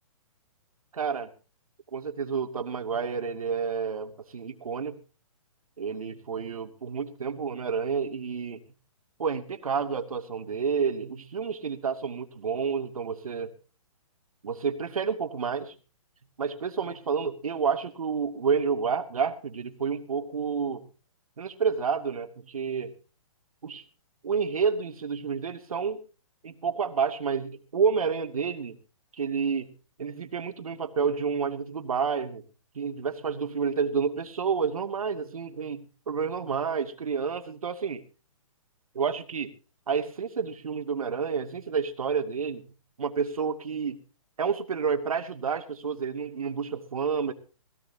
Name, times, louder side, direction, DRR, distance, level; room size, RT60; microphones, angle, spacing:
voice 1, 0.9-1.3 1.9-5.0 5.8-8.6 9.2-13.5 14.4-15.8 16.4-20.9 21.4-22.9 23.6-23.8 24.2-26.0 26.4-28.8 29.2-29.7 30.0-32.4 32.7-38.0 38.9-39.5 39.9-42.6 43.0-44.0 44.4-47.3, right 6 dB, 75° right, 6 dB, 2.6 m, -29 dB
21.0 x 16.5 x 2.9 m, 0.35 s
hypercardioid pair, 175°, 18 cm